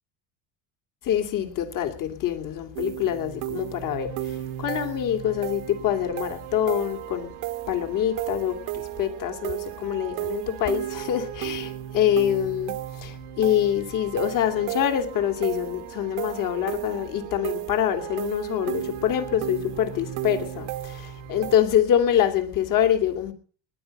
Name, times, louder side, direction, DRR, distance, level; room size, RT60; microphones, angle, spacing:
voice 1, 1.0-7.3 7.7-23.3, left 10 dB, 60° left, 2.8 m, -25 dB
sound 1, 2.7-21.6, right 14 dB, 80° right, 1.3 m, -34 dB
20.0 x 10.0 x 5.5 m
cardioid pair, 115°, 37 cm